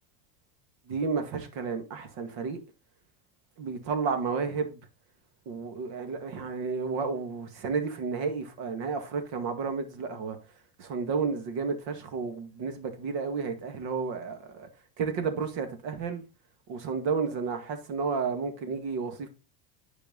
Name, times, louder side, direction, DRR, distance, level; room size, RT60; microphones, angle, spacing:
voice 1, 0.9-2.6 3.6-4.8 5.5-10.4 10.8-14.7 15.0-16.2 16.7-19.3, right 5 dB, 60° right, 2.1 m, -32 dB
10.0 x 4.8 x 3.9 m
supercardioid pair, 100°, 50 cm